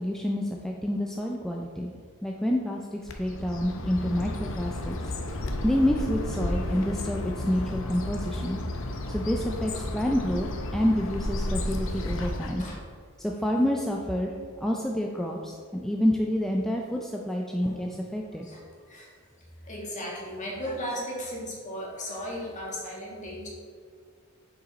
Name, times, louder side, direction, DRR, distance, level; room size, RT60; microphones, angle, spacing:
voice 1, 0.0-1.9 2.2-5.0 5.6-8.6 9.1-12.6 13.2-18.5, equal, ahead, -1 dB, 0.4 m, -28 dB
Bird, 3.1-12.8, left 1 dB, 65° left, 0.7 m, -32 dB
voice 2, 18.3-23.5, equal, 35° left, -3 dB, 1.8 m, -37 dB
6.9 x 5.5 x 4.1 m, 2.1 s
head